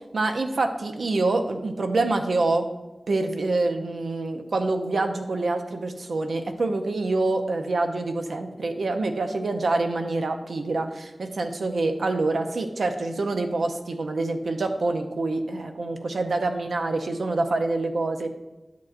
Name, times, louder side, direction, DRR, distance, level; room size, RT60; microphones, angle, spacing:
voice 1, 0.1-2.7 3.1-18.3, right 2 dB, 85° right, 5 dB, 0.7 m, -26 dB
10.5 x 7.2 x 2.6 m, 1.1 s
wide cardioid pair, 70°, 0 cm